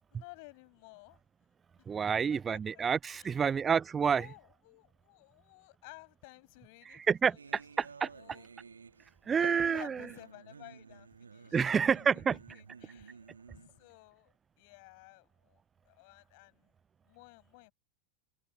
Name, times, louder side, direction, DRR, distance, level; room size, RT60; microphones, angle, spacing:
voice 1, 0.1-1.2 2.0-2.8 3.1-3.6 4.1-8.5 9.4-12.0 12.5-13.3 13.5-16.7 17.0-17.7, left 28 dB, 45° left, 7.1 m, -55 dB
voice 2, 1.9-4.3 6.9-8.1 9.3-10.0 11.5-12.4, right 6 dB, 20° right, 0.3 m, -29 dB
sound 1, 7.4-13.9, right 5 dB, 75° right, 2.1 m, -51 dB
figure-of-eight pair, 90°, 0 cm